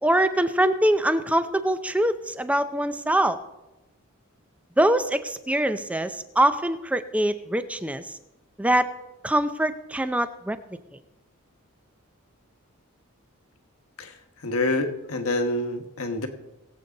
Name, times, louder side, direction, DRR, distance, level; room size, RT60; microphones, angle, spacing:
voice 1, 0.0-3.4 4.8-8.2 8.6-8.9 9.2-10.6, right 1 dB, 5° right, 11 dB, 0.5 m, -23 dB
voice 2, 14.4-16.3, left 2 dB, 80° left, 6 dB, 1.2 m, -27 dB
22.0 x 8.0 x 3.9 m, 1.0 s
head